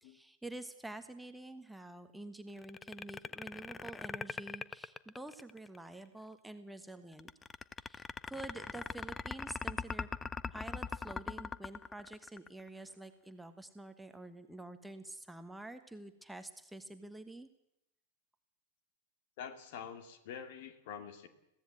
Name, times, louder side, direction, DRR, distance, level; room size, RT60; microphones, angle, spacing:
voice 1, 0.0-7.3 7.8-10.1 10.5-17.5, right 2 dB, 5° right, 8 dB, 1.3 m, -48 dB
sound 1, 2.6-5.8 7.2-12.7, left 5 dB, 15° left, 0.7 m, -40 dB
voice 2, 19.4-21.3, left 7 dB, 50° left, 9 dB, 2.4 m, -46 dB
22.0 x 16.5 x 7.8 m, 0.85 s
figure-of-eight pair, 90°, 0 cm